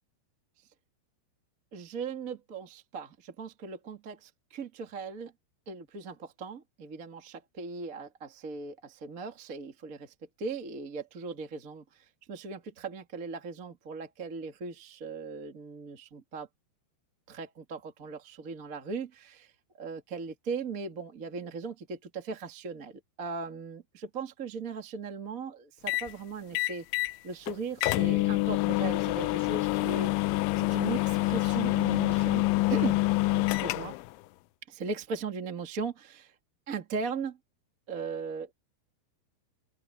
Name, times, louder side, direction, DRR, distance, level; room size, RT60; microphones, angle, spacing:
voice 1, 1.7-5.3 5.6-16.5 17.3-19.5 19.7-26.8 27.2-33.0 33.3-34.0 34.7-36.3 36.7-37.4 37.9-38.5, right 5 dB, 35° right, 1.5 m, -38 dB
sound 1, 25.9-26.1 26.5-27.2 27.5-27.6 27.8-34.1, left 20 dB, 85° left, 3.1 m, -27 dB
open air
omnidirectional pair, 5.3 m